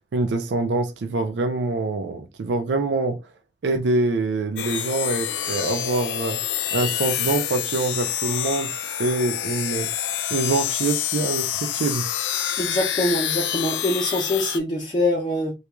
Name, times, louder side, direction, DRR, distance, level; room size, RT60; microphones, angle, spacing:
voice 1, 0.1-3.2 3.6-6.4 6.7-8.7 9.0-9.9 10.3-12.0, right 3 dB, 75° right, 0.4 m, -25 dB
sound 1, 4.6-14.6, left 10 dB, 80° left, 0.4 m, -27 dB
voice 2, 12.6-15.5, left 1 dB, 25° left, 0.6 m, -24 dB
2.3 x 2.3 x 2.9 m
head